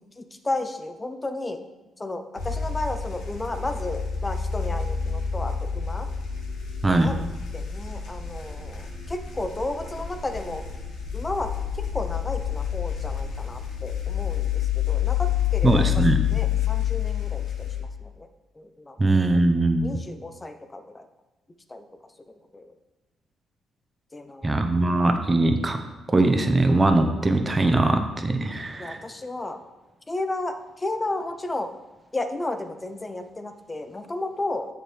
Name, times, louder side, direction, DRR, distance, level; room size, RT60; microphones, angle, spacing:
voice 1, 0.2-1.6 2.0-6.1 6.9-7.2 7.5-10.6 11.1-11.5 11.8-15.9 16.3-17.9 18.2-18.3 18.8-19.0 19.8-21.1 21.7-21.8 22.5-22.7 24.1-24.6 28.8-29.6 30.1-31.7 32.1-34.7, left 2 dB, 20° left, 8 dB, 0.6 m, -33 dB
sound 1, 2.4-17.8, left 9 dB, 80° left, 1.5 m, -28 dB
voice 2, 15.6-16.2 19.0-20.0 24.4-25.8 26.1-29.0, right 2 dB, 20° right, 7 dB, 0.8 m, -21 dB
7.4 x 6.9 x 3.3 m, 1.1 s
cardioid pair, 90°, 0 cm